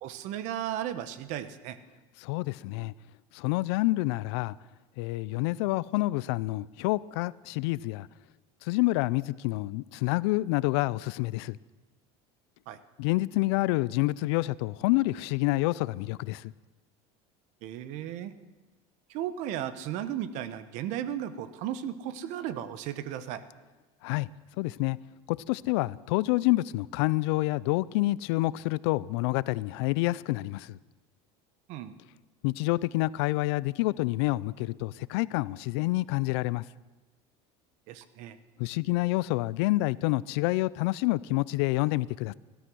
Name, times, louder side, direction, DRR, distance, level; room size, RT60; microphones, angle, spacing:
voice 1, 0.0-1.8 12.7-12.8 17.6-18.3 19.1-23.4 31.7-31.9 37.9-38.4, right 11 dB, 60° right, 1.1 m, -35 dB
voice 2, 2.2-2.9 3.3-4.5 5.0-8.1 8.6-11.6 13.0-16.5 24.0-24.3 24.6-25.0 25.3-30.8 32.4-36.6 38.6-42.3, left 20 dB, 85° left, 0.5 m, -28 dB
16.5 x 12.5 x 6.2 m
cardioid pair, 140°, 14 cm